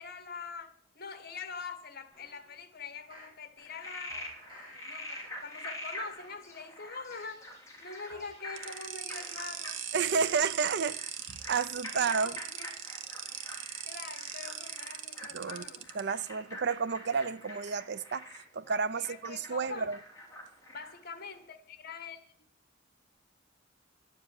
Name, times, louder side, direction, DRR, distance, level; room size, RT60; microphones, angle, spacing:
voice 1, 0.0-4.2 4.7-7.5 7.8-9.8 10.1-10.2 11.9-12.8 13.8-15.8 19.0-19.9 20.7-22.3, left 5 dB, 50° left, 1.5 m, -44 dB
sound 1, 2.1-3.4 4.1-4.8 5.1-5.6 6.1-7.4 8.1-8.8 9.1-9.6 10.0-10.1, left 1 dB, 25° right, 6.1 m, -54 dB
Frog, 3.6-21.0, left 1 dB, 15° left, 3.2 m, -46 dB
sound 2, 8.6-16.0, right 8 dB, 80° right, 1.1 m, -40 dB
voice 2, 9.9-11.0 11.3-12.4 15.3-15.6 15.9-20.0, right 5 dB, 60° right, 0.5 m, -31 dB
11.0 x 7.5 x 9.5 m
head